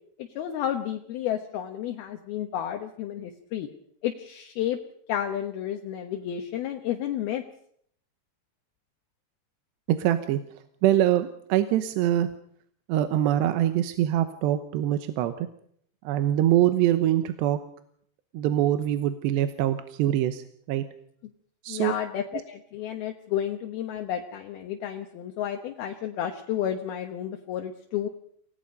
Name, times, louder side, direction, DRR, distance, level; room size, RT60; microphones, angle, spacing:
voice 1, 0.2-3.7 4.0-4.8 5.1-7.4 21.7-28.1, left 10 dB, 70° left, 5 dB, 2.9 m, -31 dB
voice 2, 9.9-10.4 10.8-12.3 12.9-15.5 16.0-17.6 18.3-20.8 21.6-21.9, right 12 dB, 85° right, 10 dB, 3.2 m, -24 dB
28.0 x 18.5 x 5.3 m, 0.65 s
omnidirectional pair, 4.8 m